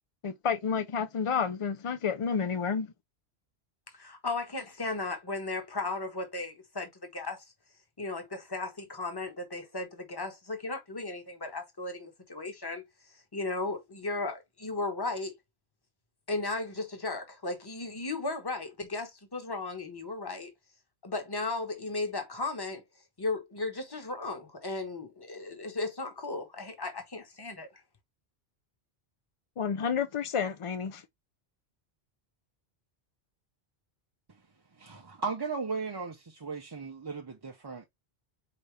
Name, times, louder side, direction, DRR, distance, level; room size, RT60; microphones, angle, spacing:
voice 1, 0.2-2.9 29.6-31.0, left 6 dB, 60° left, 0.3 m, -30 dB
voice 2, 3.9-7.4 8.0-12.8 13.3-15.3 16.3-20.5 21.0-22.8 23.2-27.7, left 3 dB, 20° left, 1.1 m, -35 dB
voice 3, 34.8-37.9, right 4 dB, 30° right, 0.5 m, -36 dB
5.1 x 2.7 x 3.2 m
omnidirectional pair, 1.1 m